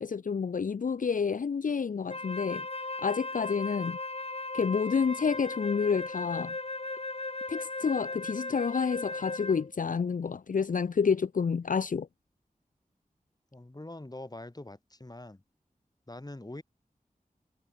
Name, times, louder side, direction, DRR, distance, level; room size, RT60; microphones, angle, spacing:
voice 1, 0.0-2.7 3.0-4.0 4.5-6.6 7.5-12.1, left 6 dB, 65° left, 0.5 m, -29 dB
Wind instrument woodwind instrument, 2.1-9.7, left 2 dB, 45° left, 2.1 m, -37 dB
voice 2, 13.5-15.4 16.1-16.6, left 1 dB, 25° left, 3.3 m, -44 dB
wide cardioid pair, 55°, 15 cm